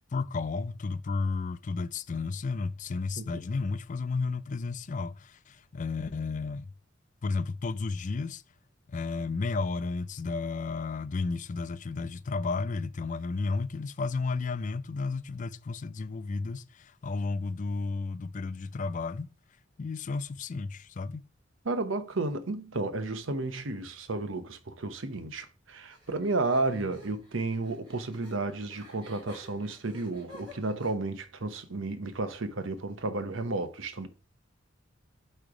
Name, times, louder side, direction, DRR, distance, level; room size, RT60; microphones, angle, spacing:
voice 1, 0.1-6.7 7.2-8.4 8.9-19.3 19.8-21.2, left 4 dB, 40° left, 0.4 m, -32 dB
voice 2, 21.6-34.1, right 2 dB, 85° right, 0.9 m, -32 dB
sound 1, 25.9-30.9, left 1 dB, 20° right, 3.8 m, -52 dB
8.8 x 3.3 x 4.9 m
head